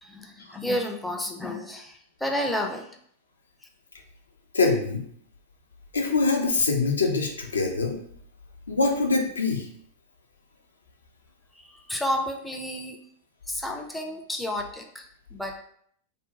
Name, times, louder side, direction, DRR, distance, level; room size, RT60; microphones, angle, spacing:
voice 1, 0.0-2.9 11.6-13.0 13.5-15.6, left 1 dB, 5° left, 2 dB, 0.4 m, -31 dB
voice 2, 4.5-5.0 5.9-8.0 8.7-9.7, left 3 dB, 75° left, 2 dB, 0.4 m, -24 dB
2.5 x 2.1 x 2.9 m, 0.64 s
figure-of-eight pair, 95°, 0 cm